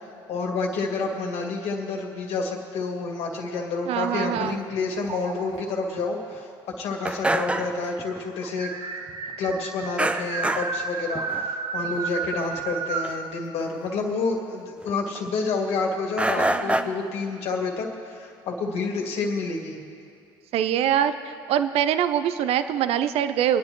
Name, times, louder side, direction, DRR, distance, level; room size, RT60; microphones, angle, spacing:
voice 1, 0.3-6.5 6.8-8.7 9.4-19.8, left 3 dB, 55° left, 0 dB, 2.3 m, -29 dB
sound 1, 3.1-4.5 5.1-5.7 6.7-6.8 7.1-7.2 7.5-13.2, right 5 dB, 40° right, 1.0 m, -33 dB
voice 2, 3.9-4.6 16.4-17.0 20.5-23.6, right 10 dB, 55° right, 11 dB, 0.6 m, -24 dB
sound 2, 4.4-4.6 5.1-5.2 5.5-5.6 6.0-6.1 6.3-6.4 7.0-8.2 8.5-8.6 10.0-10.8 11.1-11.5 11.8-12.0 12.4-12.5 13.0-13.1 13.6-13.7 14.8-15.4 16.2-16.8, right 1 dB, 10° right, 0.6 m, -27 dB
26.5 x 10.5 x 3.1 m, 2.5 s
hypercardioid pair, 65°, 12 cm